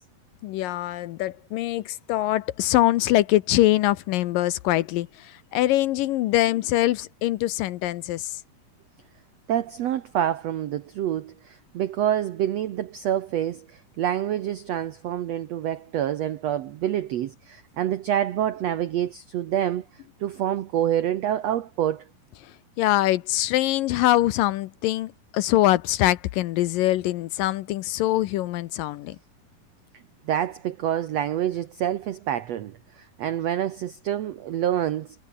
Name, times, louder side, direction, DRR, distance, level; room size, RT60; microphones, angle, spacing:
voice 1, 0.4-8.4 22.8-29.2, left 15 dB, 75° left, 2.2 m, -23 dB
voice 2, 9.5-22.0 30.3-35.1, right 11 dB, 90° right, 1.4 m, -27 dB
omnidirectional pair, 4.4 m